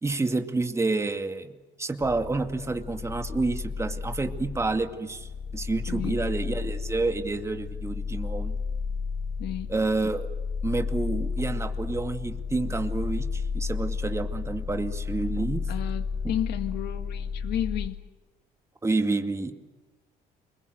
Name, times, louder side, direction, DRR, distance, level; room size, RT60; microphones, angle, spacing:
voice 1, 0.0-8.6 9.7-10.3 10.6-15.7 16.2-16.3 18.8-19.5, right 3 dB, 15° right, 6 dB, 2.3 m, -29 dB
sound 1, 2.0-17.9, left 5 dB, 55° left, 1.7 m, -32 dB
voice 2, 9.4-9.7 15.7-18.0, left 12 dB, 75° left, 7 dB, 1.9 m, -32 dB
29.5 x 22.0 x 8.0 m, 1.2 s
cardioid pair, 110°, 17 cm